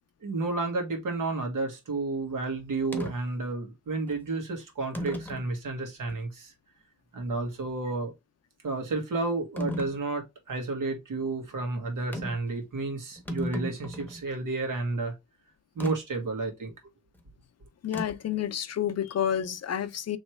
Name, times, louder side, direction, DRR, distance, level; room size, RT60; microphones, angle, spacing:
voice 1, 0.2-6.5 7.1-8.1 8.6-15.1 15.7-16.7, right 3 dB, 75° right, 1.6 m, -31 dB
sound 1, 2.9-3.2 4.1-4.2 4.9-5.5 6.1-6.2 9.6-10.0 12.1-12.5 12.8-12.9 13.1-14.2 15.8-16.0 17.9-18.3, equal, 5° left, 0.9 m, -34 dB
voice 2, 17.8-20.2, left 9 dB, 55° left, 0.6 m, -29 dB
3.2 x 3.2 x 4.4 m
wide cardioid pair, 130°, 31 cm